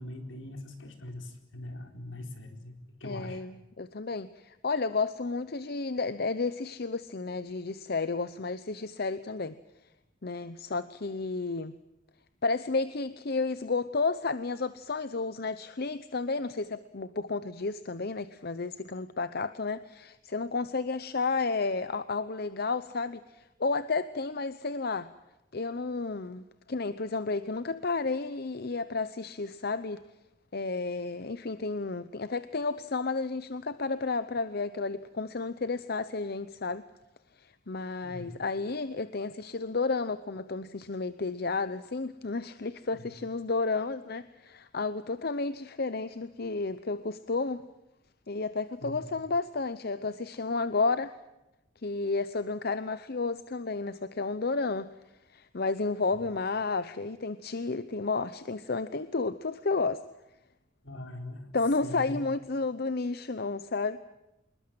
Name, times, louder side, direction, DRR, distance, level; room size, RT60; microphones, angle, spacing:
voice 1, 0.0-2.7 3.0-3.4 38.0-38.3 42.9-43.1 48.8-49.0 60.8-61.5 61.8-62.1, left 1 dB, 75° left, 4 dB, 4.4 m, -42 dB
voice 2, 3.0-9.6 10.2-11.7 12.4-25.1 25.5-30.0 30.5-36.8 37.4-47.6 48.3-51.1 51.8-54.9 55.3-60.0 61.5-64.0, left 3 dB, 50° left, 13 dB, 0.8 m, -32 dB
26.5 x 21.5 x 7.7 m, 0.94 s
head